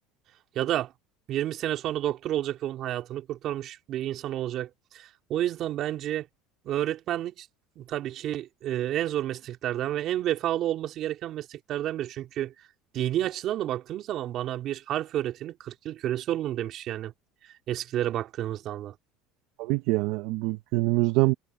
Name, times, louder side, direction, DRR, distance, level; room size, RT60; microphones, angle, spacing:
voice 1, 0.5-0.9 1.3-6.3 6.6-7.5 7.8-12.5 12.9-17.1 17.7-18.9, right 12 dB, 50° right, 3.3 m, -30 dB
voice 2, 19.6-21.3, right 21 dB, 70° right, 0.9 m, -24 dB
supercardioid pair, 105°, 0 cm